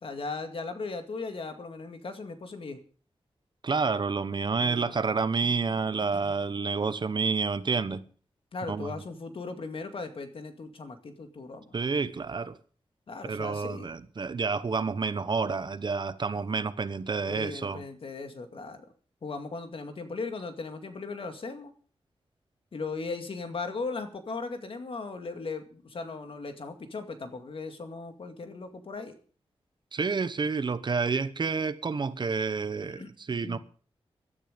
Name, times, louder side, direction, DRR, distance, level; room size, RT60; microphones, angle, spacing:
voice 1, 0.0-2.8 4.6-4.9 5.4-5.6 6.2-6.3 8.5-11.7 13.1-13.9 17.3-18.9 19.2-21.7 22.7-29.2 32.8-33.1 33.4-33.6, left 3 dB, 60° left, 2.2 m, -38 dB
voice 2, 3.6-8.0 8.7-9.0 11.7-12.6 13.2-17.8 29.9-33.6, right 4 dB, 45° right, 1.0 m, -29 dB
16.0 x 12.5 x 5.2 m
wide cardioid pair, 125°, 10 cm